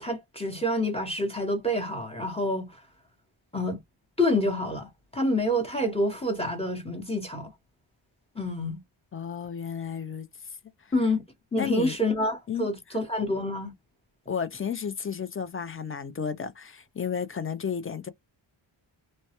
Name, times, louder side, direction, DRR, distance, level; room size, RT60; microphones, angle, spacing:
voice 1, 0.0-2.8 3.5-3.8 4.2-7.5 8.3-8.8 10.9-11.2 11.5-13.7, left 1 dB, 10° left, 0.8 m, -27 dB
voice 2, 9.1-10.3 11.6-12.0 12.5-12.7 14.3-18.1, left 7 dB, 30° left, 0.4 m, -32 dB
2.2 x 2.0 x 2.8 m
wide cardioid pair, 100°, 49 cm